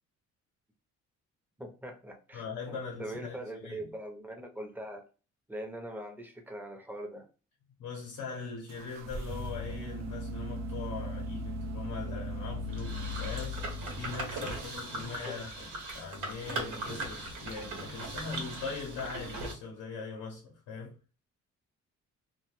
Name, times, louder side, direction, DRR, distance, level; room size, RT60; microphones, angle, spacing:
voice 1, 1.6-5.0 5.5-7.2 15.3-15.4, right 1 dB, 5° right, 0.7 m, -42 dB
voice 2, 2.3-3.9 7.8-20.9, left 5 dB, 80° left, 0.7 m, -41 dB
sound 1, 8.7-14.6, left 1 dB, 60° right, 0.4 m, -38 dB
sound 2, 12.7-19.5, right 2 dB, 80° right, 0.9 m, -39 dB
2.3 x 2.2 x 3.0 m
cardioid pair, 90°, 30 cm